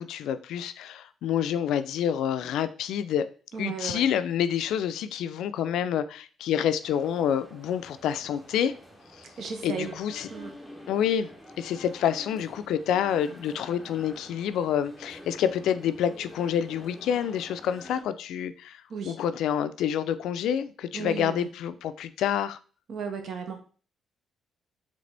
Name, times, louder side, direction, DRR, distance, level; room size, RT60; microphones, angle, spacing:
voice 1, 0.0-3.3 3.6-8.7 9.6-10.3 10.9-11.3 11.6-22.6, left 9 dB, 85° left, 0.3 m, -28 dB
voice 2, 3.5-4.1 9.4-10.0 10.3-10.6 18.9-19.2 20.9-21.5 22.9-23.6, right 6 dB, 60° right, 0.8 m, -35 dB
sound 1, 6.8-18.0, equal, ahead, 0.9 m, -48 dB
3.9 x 3.3 x 3.3 m
cardioid pair, 105°, 0 cm